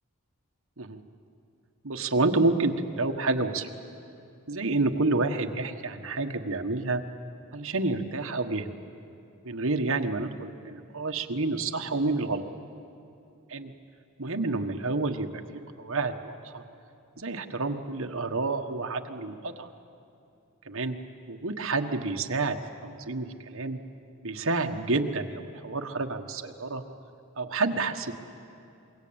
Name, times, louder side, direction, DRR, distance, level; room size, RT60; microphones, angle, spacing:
voice 1, 1.8-3.7 4.5-7.0 7.5-8.7 9.4-12.4 13.5-13.7 14.2-15.4 15.8-16.6 17.2-19.7 20.6-21.0 21.3-23.8 24.2-26.8 27.4-28.1, right 3 dB, 65° right, 5 dB, 1.4 m, -29 dB
27.0 x 22.5 x 8.8 m, 2.7 s
head